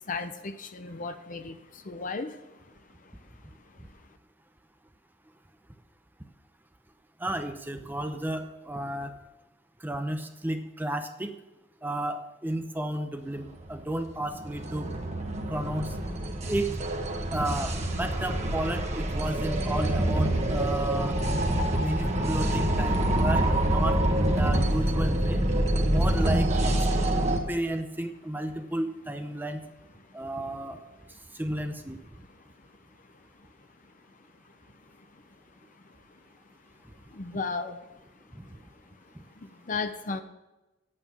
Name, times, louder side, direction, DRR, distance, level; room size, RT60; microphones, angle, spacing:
voice 1, 0.1-2.4 37.1-37.8 39.4-40.2, left 4 dB, 45° left, 9 dB, 0.7 m, -34 dB
voice 2, 7.2-9.1 9.8-11.3 11.8-14.9 15.5-15.9 16.5-16.7 17.3-21.2 21.8-23.0 23.2-25.4 25.9-26.8 27.5-29.6 30.1-30.8 31.4-32.0, right 1 dB, 10° right, 7 dB, 0.7 m, -32 dB
sound 1, 13.5-27.4, right 1 dB, 35° right, 1.6 m, -26 dB
9.6 x 8.6 x 6.1 m, 1.0 s
head